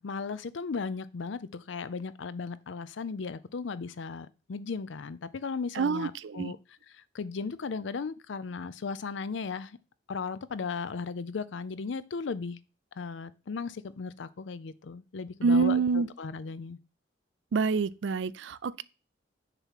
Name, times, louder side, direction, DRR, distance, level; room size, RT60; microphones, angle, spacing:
voice 1, 0.0-6.6 7.1-9.8 10.1-12.6 13.0-16.8, left 5 dB, 75° left, 0.5 m, -36 dB
voice 2, 5.7-6.5 15.4-16.1 17.5-18.8, right 4 dB, 70° right, 0.4 m, -26 dB
6.7 x 3.1 x 5.7 m
head